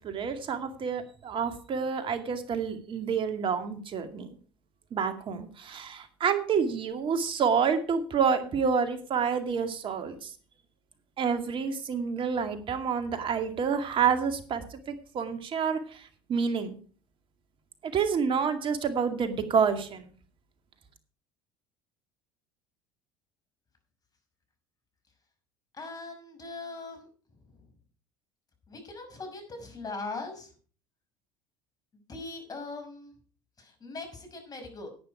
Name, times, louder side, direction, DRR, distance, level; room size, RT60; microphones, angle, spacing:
voice 1, 0.0-4.3 4.9-10.3 11.2-16.8 17.8-20.1, right 6 dB, 45° right, 8 dB, 2.3 m, -28 dB
voice 2, 25.7-27.1 28.7-30.5 32.1-33.1 33.6-34.9, left 3 dB, 30° left, 5 dB, 5.8 m, -40 dB
11.0 x 9.6 x 4.8 m, 0.41 s
hypercardioid pair, 75°, 12 cm